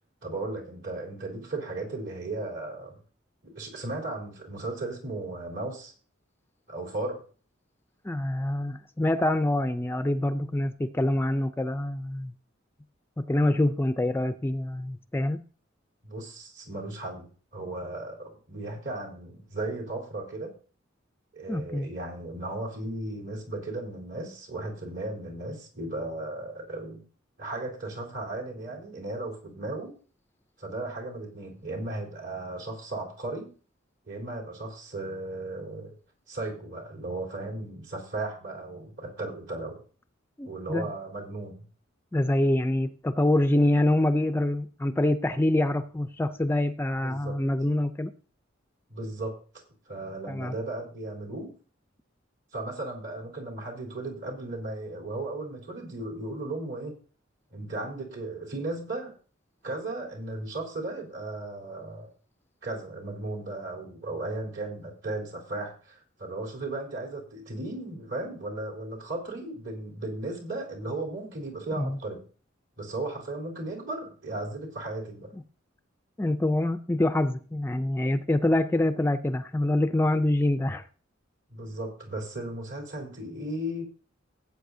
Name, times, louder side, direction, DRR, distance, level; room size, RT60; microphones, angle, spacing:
voice 1, 0.2-3.0 3.4-5.9 6.7-7.2 16.0-20.5 21.3-27.0 27.4-29.9 30.6-33.5 34.1-35.9 36.3-39.8 40.4-41.6 47.0-47.4 48.9-49.3 49.9-51.5 52.5-56.9 57.5-59.2 59.6-62.1 62.6-72.2 72.8-75.3 81.5-83.8, right 2 dB, 65° right, -1 dB, 3.6 m, -36 dB
voice 2, 8.0-12.3 13.2-15.4 21.5-21.9 40.4-40.9 42.1-48.1 50.3-50.5 71.8-72.0 76.2-80.8, left 1 dB, 10° left, 10 dB, 0.4 m, -25 dB
16.5 x 8.4 x 2.7 m, 0.40 s
head